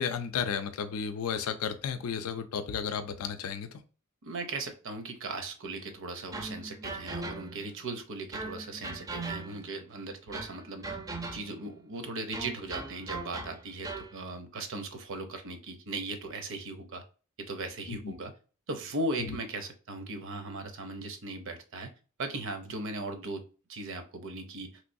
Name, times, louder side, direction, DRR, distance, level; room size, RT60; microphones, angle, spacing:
voice 1, 0.0-3.8 17.9-18.1, left 7 dB, 85° left, 9 dB, 0.4 m, -33 dB
voice 2, 4.2-17.0 17.4-18.3 18.7-21.9 22.2-24.8, right 2 dB, 60° right, 7 dB, 0.6 m, -38 dB
sound 1, 6.3-7.7 8.3-9.8 10.3-11.7 12.3-14.2, right 3 dB, 15° right, 0.4 m, -39 dB
3.1 x 3.0 x 2.6 m, 0.36 s
head